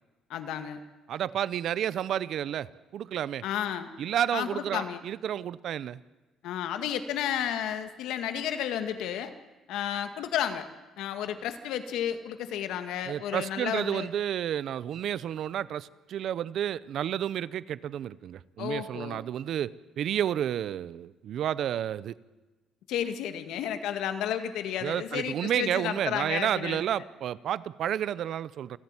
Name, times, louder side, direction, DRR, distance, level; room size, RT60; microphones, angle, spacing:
voice 1, 0.3-0.8 3.4-3.9 4.3-5.0 6.4-9.3 9.7-10.7 11.0-14.1 18.6-19.2 22.9-26.8, left 9 dB, 75° left, 9 dB, 1.9 m, -32 dB
voice 2, 1.1-3.4 4.0-6.0 13.1-19.7 20.0-22.1 24.8-28.8, right 10 dB, 50° right, 19 dB, 0.6 m, -31 dB
28.5 x 11.5 x 9.7 m, 1.2 s
cardioid pair, 160°, 0 cm